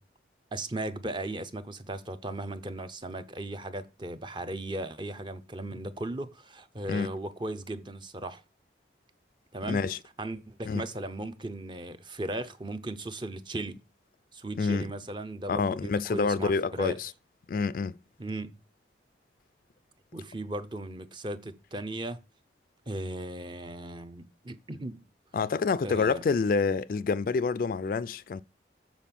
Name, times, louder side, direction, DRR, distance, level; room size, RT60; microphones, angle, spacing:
voice 1, 0.5-8.4 9.5-9.8 10.2-13.8 14.3-17.0 18.2-18.6 20.1-22.2 22.9-25.1 25.8-26.2, right 1 dB, 25° right, 0.6 m, -37 dB
voice 2, 9.7-10.0 10.6-10.8 14.6-14.9 15.5-17.1 17.5-18.0 25.3-28.4, left 4 dB, 50° left, 0.3 m, -27 dB
7.2 x 4.5 x 5.8 m
head